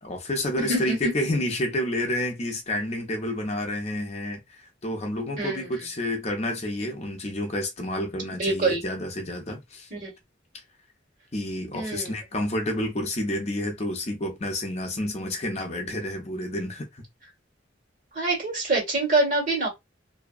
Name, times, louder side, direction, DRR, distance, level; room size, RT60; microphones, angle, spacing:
voice 1, 0.0-9.9 11.3-17.0, left 1 dB, 35° left, 0.7 m, -29 dB
voice 2, 0.6-1.1 5.4-5.7 8.4-8.8 9.9-10.1 11.7-12.1 18.1-19.7, right 2 dB, 45° right, 1.6 m, -25 dB
2.7 x 2.2 x 2.3 m
head